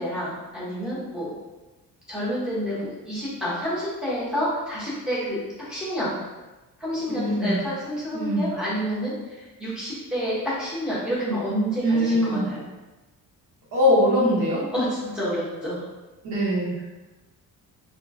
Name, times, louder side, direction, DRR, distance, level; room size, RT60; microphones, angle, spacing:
voice 1, 0.0-1.3 2.1-6.1 6.8-12.6 14.7-15.8, equal, ahead, -10 dB, 0.8 m, -29 dB
voice 2, 7.1-7.6 8.1-8.5 11.8-12.4 13.7-14.6 16.2-16.7, left 1 dB, 70° right, -7 dB, 1.0 m, -22 dB
2.9 x 2.3 x 2.5 m, 1.1 s
cardioid pair, 165°, 35 cm